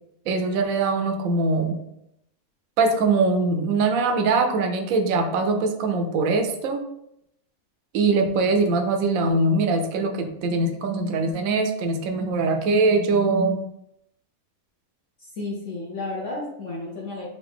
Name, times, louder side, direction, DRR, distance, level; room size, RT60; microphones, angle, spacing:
voice 1, 0.3-1.8 2.8-6.8 7.9-13.6, right 3 dB, 70° right, 5 dB, 1.0 m, -22 dB
voice 2, 15.2-17.3, left 2 dB, 60° left, -5 dB, 1.1 m, -32 dB
3.8 x 2.5 x 3.5 m, 0.78 s
omnidirectional pair, 1.5 m